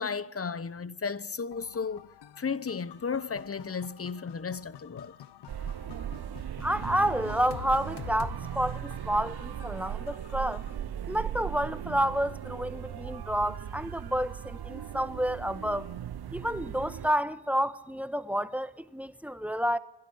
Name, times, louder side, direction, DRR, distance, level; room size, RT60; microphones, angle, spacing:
voice 1, 0.0-2.1 2.4-5.1 11.0-11.1, left 5 dB, 35° left, 1.0 m, -34 dB
sound 1, 1.5-10.7, left 11 dB, 85° left, 0.8 m, -49 dB
sound 2, 5.5-17.1, right 10 dB, 70° right, 0.9 m, -38 dB
voice 2, 6.6-10.6 11.1-15.9 16.3-19.8, equal, 5° right, 1.3 m, -30 dB
28.0 x 12.0 x 9.9 m
supercardioid pair, 40°, 40 cm